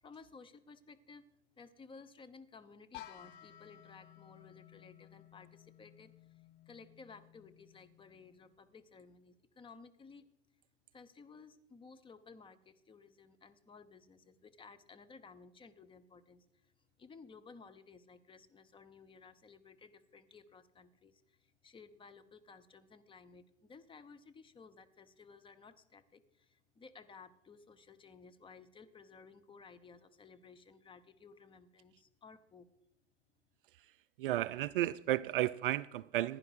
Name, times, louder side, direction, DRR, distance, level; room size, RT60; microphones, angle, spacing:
voice 1, 0.0-1.3 1.6-6.4 6.7-10.3 10.9-16.7 17.0-32.7, left 4 dB, 15° left, 0.7 m, -57 dB
sound 1, 2.9-8.7, left 12 dB, 50° left, 0.9 m, -56 dB
voice 2, 34.2-36.4, right 14 dB, 50° right, 0.4 m, -33 dB
15.5 x 10.5 x 4.8 m
figure-of-eight pair, 95°, 36 cm